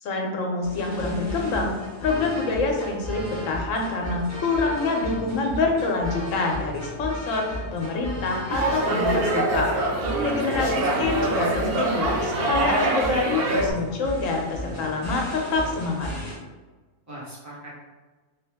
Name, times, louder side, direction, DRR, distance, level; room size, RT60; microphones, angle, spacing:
voice 1, 0.0-9.8 10.2-16.1, left 3 dB, 70° left, 1 dB, 1.0 m, -26 dB
sound 1, 0.6-16.3, equal, 20° left, 0.5 m, -35 dB
sound 2, 8.5-13.7, right 2 dB, 55° right, 0.7 m, -24 dB
voice 2, 10.9-11.3 17.1-17.7, right 1 dB, 15° right, -6 dB, 0.8 m, -39 dB
3.4 x 2.6 x 3.4 m, 1.3 s
omnidirectional pair, 1.4 m